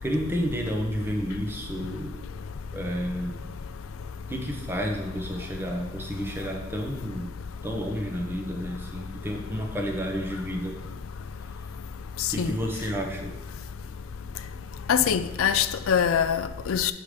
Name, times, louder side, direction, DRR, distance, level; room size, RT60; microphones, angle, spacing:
voice 1, 0.0-2.2 2.7-3.5 4.3-7.3 7.6-10.8 12.3-13.3, equal, 10° right, 1.1 m, -31 dB
voice 2, 14.9-16.9, left 8 dB, 90° left, 0.4 m, -23 dB
8.0 x 5.0 x 5.1 m
head